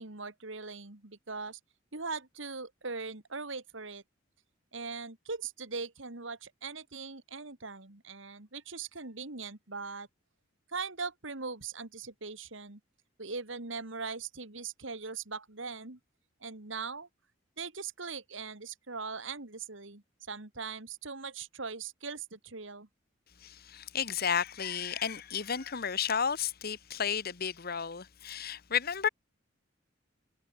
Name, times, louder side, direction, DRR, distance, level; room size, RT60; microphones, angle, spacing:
voice 1, 0.0-1.6 1.9-4.0 4.7-10.1 10.7-12.8 13.2-16.0 16.4-17.1 17.6-22.9, right 4 dB, 65° right, 2.3 m, -40 dB
voice 2, 23.4-29.1, left 7 dB, 50° left, 1.0 m, -32 dB
head